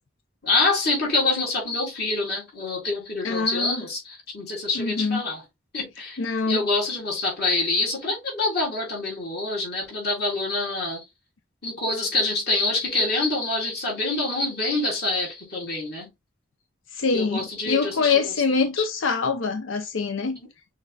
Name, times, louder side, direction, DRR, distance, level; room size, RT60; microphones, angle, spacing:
voice 1, 0.4-5.4 5.7-6.2 6.5-11.0 11.6-16.1 17.1-18.3 18.8-18.9, left 3 dB, 50° left, 3.5 m, -26 dB
voice 2, 3.2-3.8 4.7-5.2 6.2-6.6 16.9-20.4, left 4 dB, 90° left, 0.6 m, -24 dB
6.4 x 3.5 x 2.3 m
head